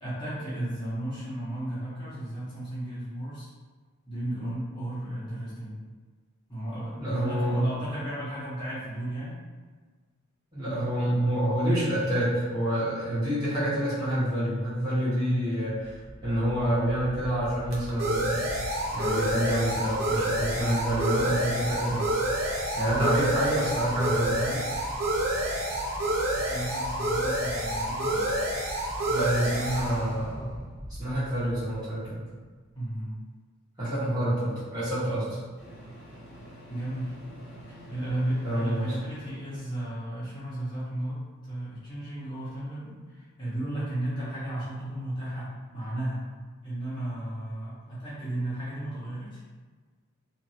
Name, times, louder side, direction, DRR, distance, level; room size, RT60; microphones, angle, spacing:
voice 1, 0.0-3.5 4.1-5.8 6.5-9.4 23.0-23.2 26.3-28.3 32.7-33.2 34.3-34.4 36.7-37.2 37.7-46.3 46.6-49.4, right 1 dB, 20° left, -11 dB, 0.8 m, -34 dB
voice 2, 7.0-7.6 10.5-16.0 16.2-18.5 18.9-22.1 22.8-24.6 29.1-30.6 31.0-32.1 33.8-35.4 38.4-38.9, right 1 dB, 20° right, -12 dB, 1.2 m, -27 dB
sound 1, 16.1-31.5, right 1 dB, 80° right, 0.7 m, -29 dB
Microwave oven, 34.6-34.7 35.6-39.8, equal, 50° right, 0.8 m, -47 dB
2.8 x 2.6 x 2.7 m, 1.4 s
head